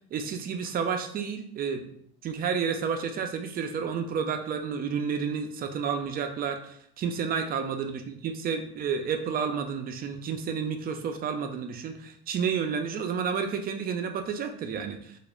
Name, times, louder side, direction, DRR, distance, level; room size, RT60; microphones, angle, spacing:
voice 1, 0.1-1.9 2.2-15.2, right 6 dB, 30° right, 6 dB, 0.4 m, -31 dB
2.4 x 2.1 x 3.0 m, 0.67 s
hypercardioid pair, 85°, 30 cm